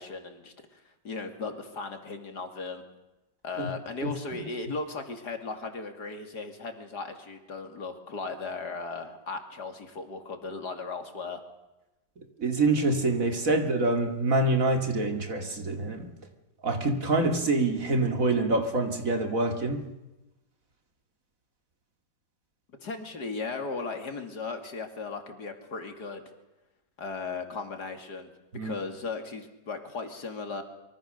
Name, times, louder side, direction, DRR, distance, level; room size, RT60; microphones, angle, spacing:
voice 1, 0.0-2.8 3.4-11.4 22.8-26.2 27.0-28.3 28.6-30.6, left 4 dB, 70° left, 6 dB, 3.0 m, -37 dB
voice 2, 12.4-16.1 16.6-19.9 28.5-28.7, right 2 dB, 50° right, 6 dB, 2.6 m, -26 dB
25.0 x 23.5 x 6.7 m, 1.0 s
omnidirectional pair, 1.8 m